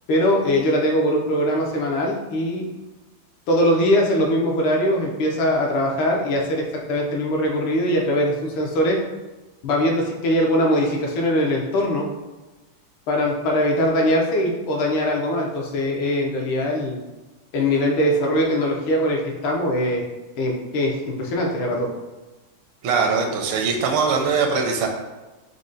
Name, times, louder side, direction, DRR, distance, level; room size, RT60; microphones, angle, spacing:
voice 1, 0.1-2.7 3.5-9.0 9.6-12.1 13.1-17.0 17.5-20.0 20.4-21.9, equal, 75° left, 0 dB, 1.5 m, -21 dB
voice 2, 22.8-24.9, right 5 dB, 80° right, 3 dB, 1.4 m, -21 dB
4.9 x 2.1 x 3.8 m, 1.2 s
omnidirectional pair, 2.3 m